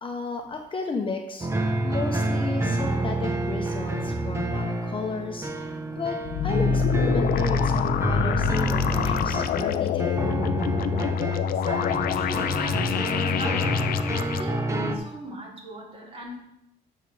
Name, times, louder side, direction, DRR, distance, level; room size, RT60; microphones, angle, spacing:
voice 1, 0.0-10.3, left 4 dB, 30° left, 3 dB, 1.1 m, -33 dB
sound 1, 1.4-15.0, right 1 dB, 15° right, 1.1 m, -28 dB
sound 2, 6.2-14.4, left 9 dB, 60° left, 0.6 m, -26 dB
voice 2, 11.5-13.8 14.2-16.4, right 1 dB, 35° right, -3 dB, 3.5 m, -38 dB
11.5 x 6.8 x 3.5 m, 0.80 s
cardioid pair, 110°, 17 cm